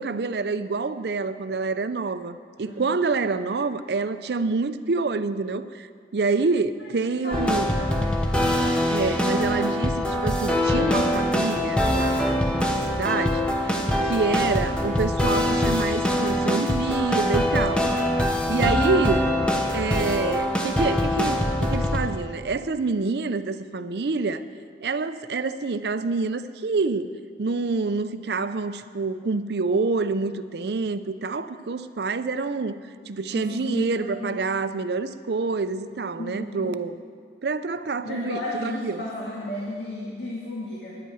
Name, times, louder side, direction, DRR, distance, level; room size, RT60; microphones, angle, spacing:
voice 1, 0.0-5.9 6.1-7.7 8.9-17.9 18.5-19.3 19.7-24.4 24.8-32.8 33.1-37.0 37.4-39.0, right 4 dB, 65° right, 12 dB, 0.5 m, -27 dB
voice 2, 7.0-8.2 18.6-18.9 33.3-34.4 36.2-36.7 38.0-41.0, left 1 dB, 70° left, -5 dB, 2.0 m, -34 dB
sound 1, 7.3-22.3, left 1 dB, 5° left, 0.8 m, -23 dB
10.5 x 8.4 x 8.9 m, 2.1 s
head